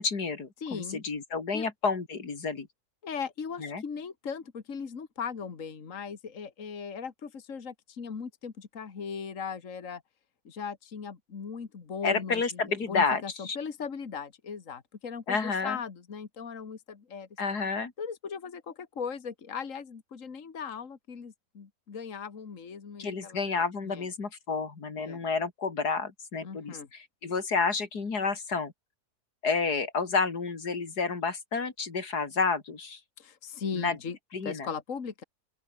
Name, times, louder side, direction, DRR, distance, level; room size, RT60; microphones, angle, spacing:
voice 1, 0.0-2.7 3.6-3.8 12.0-13.6 15.3-15.8 17.4-17.9 23.0-28.7 29.4-33.0 33.7-34.0 34.3-34.7, left 4 dB, 85° left, 3.3 m, -30 dB
voice 2, 0.6-1.0 1.5-1.7 3.0-10.0 10.4-12.6 12.9-17.3 18.0-23.4 23.8-24.1 25.0-25.2 26.4-26.9 33.2-34.2 34.4-35.2, left 6 dB, 55° left, 2.2 m, -38 dB
open air
omnidirectional pair, 1.6 m